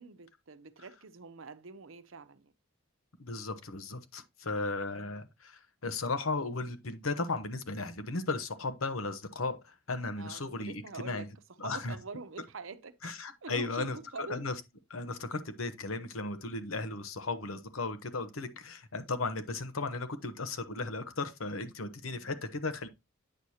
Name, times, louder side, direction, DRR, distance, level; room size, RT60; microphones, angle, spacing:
voice 1, 0.0-2.5 10.2-11.3 11.6-13.1 13.4-14.4 22.0-22.3, right 4 dB, 70° right, 0.8 m, -45 dB
voice 2, 3.2-11.3 11.6-12.0 13.0-14.5 14.9-22.9, left 3 dB, 85° left, 1.0 m, -36 dB
8.9 x 6.4 x 2.8 m
head